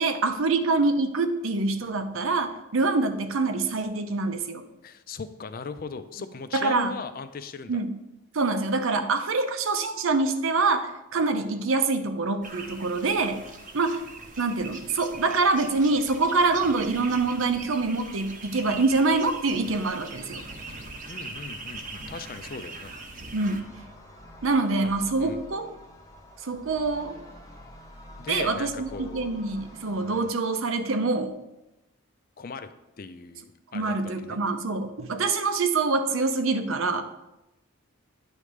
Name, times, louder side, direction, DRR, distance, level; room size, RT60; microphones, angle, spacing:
voice 1, 0.0-4.6 6.5-7.0 7.7-8.0 8.3-13.5 13.7-14.0 14.4-20.4 23.3-23.7 24.4-25.7 26.4-27.2 28.3-31.4 33.7-37.1, right 3 dB, 75° right, 8 dB, 0.6 m, -25 dB
voice 2, 4.8-7.8 21.1-23.0 24.8-24.9 25.2-25.4 28.2-29.4 32.4-32.7 33.0-34.4, left 4 dB, 45° left, 10 dB, 0.4 m, -38 dB
sound 1, 12.4-23.6, right 3 dB, 40° right, 0.8 m, -41 dB
sound 2, 23.6-30.3, left 1 dB, 15° left, 0.7 m, -47 dB
9.6 x 3.2 x 5.0 m, 0.94 s
head